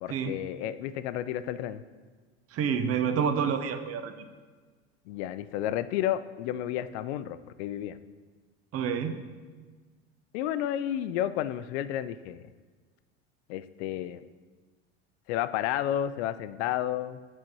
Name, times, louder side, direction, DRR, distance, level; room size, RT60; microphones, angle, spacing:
voice 1, 0.0-1.8 5.1-8.0 10.3-12.5 13.5-14.2 15.3-17.2, left 11 dB, 70° left, 13 dB, 0.5 m, -31 dB
voice 2, 2.5-4.1 8.7-9.2, right 7 dB, 45° right, 9 dB, 0.7 m, -28 dB
6.2 x 4.4 x 6.0 m, 1.4 s
hypercardioid pair, 75°, 35 cm